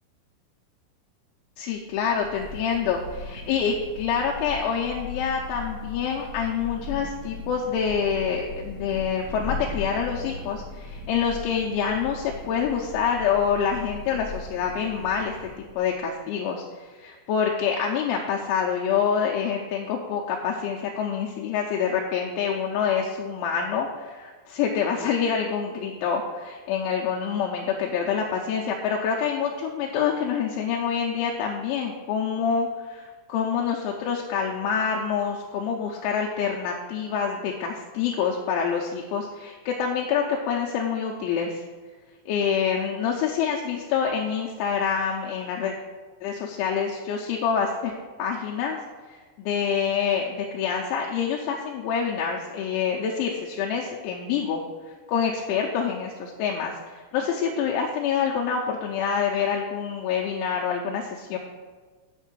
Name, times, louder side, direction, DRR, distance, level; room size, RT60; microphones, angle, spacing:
voice 1, 1.6-41.6 42.3-45.7 46.2-47.9 48.2-48.8 49.1-61.4, left 7 dB, 80° left, -1 dB, 2.9 m, -26 dB
Thunder / Rain, 1.8-16.1, left 3 dB, 40° right, 3.7 m, -38 dB
8.1 x 6.5 x 6.1 m, 1.4 s
omnidirectional pair, 5.8 m